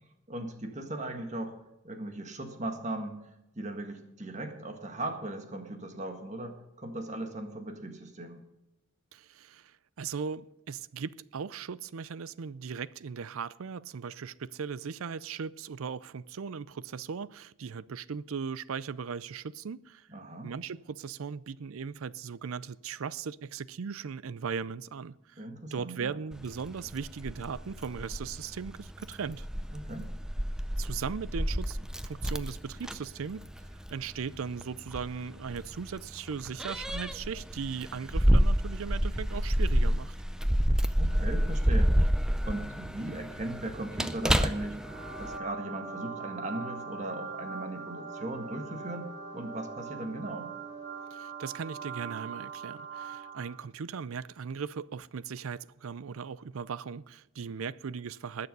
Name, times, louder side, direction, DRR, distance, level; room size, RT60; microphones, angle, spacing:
voice 1, 0.3-1.6 1.8-3.2 3.5-8.4 20.1-20.5 25.4-26.2 29.7-30.1 40.6-42.0 42.5-44.8 45.2-50.5, right 1 dB, 35° right, 1.7 m, -38 dB
voice 2, 9.1-20.1 20.4-25.4 25.7-29.5 30.8-31.8 32.0-33.4 33.9-40.1 51.1-58.5, right 6 dB, 85° right, 0.5 m, -38 dB
Keys jangling, 26.3-45.4, equal, 5° right, 0.4 m, -29 dB
sound 1, 44.8-53.6, right 4 dB, 50° right, 3.5 m, -41 dB
20.5 x 6.8 x 5.4 m
head